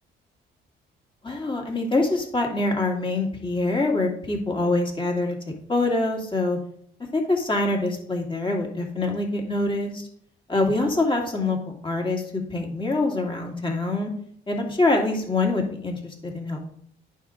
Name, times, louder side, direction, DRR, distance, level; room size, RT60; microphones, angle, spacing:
voice 1, 1.2-5.3 5.7-6.6 7.1-10.1 10.5-11.6 11.8-14.1 14.5-16.6, left 2 dB, 25° left, 1 dB, 2.4 m, -25 dB
9.5 x 3.7 x 6.6 m, 0.64 s
cardioid pair, 90°, 20 cm